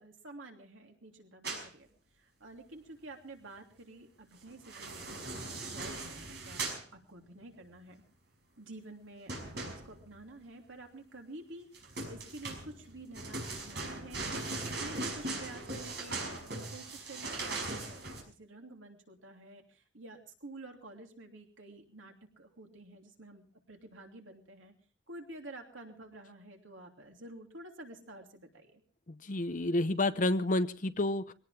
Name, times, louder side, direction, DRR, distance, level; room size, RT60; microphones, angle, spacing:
voice 1, 0.0-1.9 2.2-8.0 8.6-16.2 16.6-24.7 25.1-28.8, right 2 dB, 90° right, 3 dB, 3.0 m, -50 dB
sound 1, 1.4-1.7 4.5-6.8 9.3-10.2 11.7-18.2, right 2 dB, 60° right, 5.6 m, -39 dB
voice 2, 29.1-31.3, left 2 dB, 45° left, 11 dB, 0.8 m, -30 dB
23.0 x 18.0 x 3.4 m, 0.37 s
head